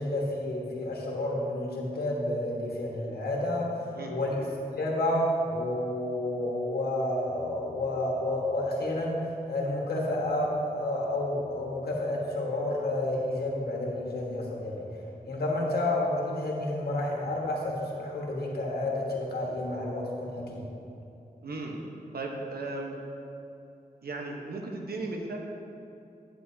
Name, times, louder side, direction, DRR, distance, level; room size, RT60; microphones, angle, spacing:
voice 1, 0.0-3.7 4.1-4.5 4.8-14.8 15.2-20.7, left 1 dB, 90° left, -2 dB, 1.5 m, -30 dB
voice 2, 21.4-21.8 22.1-23.0 24.0-25.4, right 2 dB, 75° right, 1 dB, 1.1 m, -36 dB
9.5 x 9.1 x 2.8 m, 2.8 s
wide cardioid pair, 90°, 16 cm